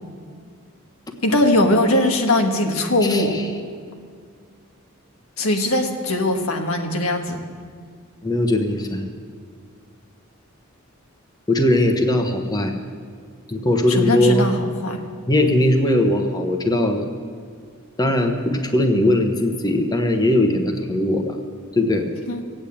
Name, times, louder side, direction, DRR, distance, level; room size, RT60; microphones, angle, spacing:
voice 1, 1.2-3.3 5.4-7.4 13.9-15.0 22.3-22.4, left 1 dB, 85° left, 3 dB, 1.6 m, -20 dB
voice 2, 3.0-3.5 8.2-9.1 11.5-12.7 13.5-14.5 15.3-17.0 18.0-21.4 21.8-22.1, left 1 dB, 20° left, 5 dB, 1.0 m, -19 dB
16.5 x 8.7 x 8.6 m, 2.1 s
head